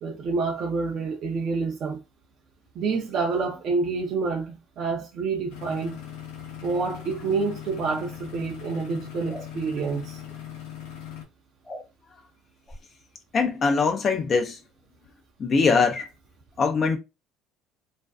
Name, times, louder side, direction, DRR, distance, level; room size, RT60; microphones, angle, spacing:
voice 1, 0.0-2.0 2.8-6.0 6.6-10.2, right 4 dB, 55° right, 0.5 m, -28 dB
sound 1, 5.5-11.2, left 10 dB, 85° left, 0.6 m, -40 dB
sound 2, 9.3-9.5 11.6-11.9 12.7-12.8, left 1 dB, 15° left, 0.7 m, -39 dB
voice 2, 13.3-14.6 15.4-16.1 16.6-17.0, left 4 dB, 40° left, 0.4 m, -22 dB
2.4 x 2.2 x 2.3 m
supercardioid pair, 90°, 0 cm